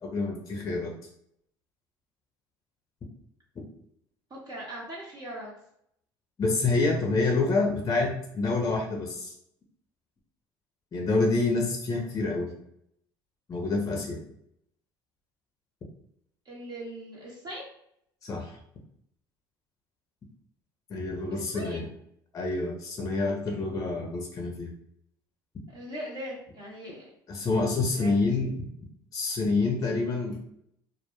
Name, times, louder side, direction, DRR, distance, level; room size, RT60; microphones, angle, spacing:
voice 1, 0.0-0.9 6.4-9.3 10.9-12.5 13.5-14.2 18.2-18.6 20.9-21.9 22.3-24.7 27.3-28.7 29.1-30.4, left 3 dB, 30° left, 1 dB, 0.5 m, -27 dB
voice 2, 4.3-5.5 16.5-17.7 21.3-21.8 25.7-27.1 27.9-28.1, equal, 35° right, -4 dB, 0.7 m, -40 dB
2.0 x 2.0 x 3.0 m, 0.72 s
hypercardioid pair, 70°, 11 cm